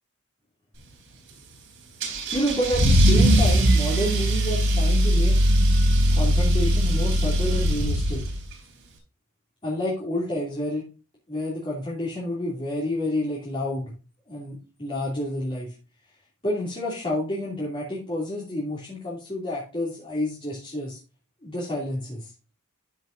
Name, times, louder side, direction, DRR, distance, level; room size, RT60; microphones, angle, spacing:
Car / Engine starting / Accelerating revving vroom, 2.0-8.5, equal, 60° right, 3.7 m, -20 dB
voice 1, 2.3-5.5 6.1-8.2 9.6-10.8 11.3-13.9 14.3-15.7 16.4-21.0 21.4-22.3, left 1 dB, 25° left, -6 dB, 3.0 m, -29 dB
13.0 x 6.1 x 2.7 m, 0.32 s
head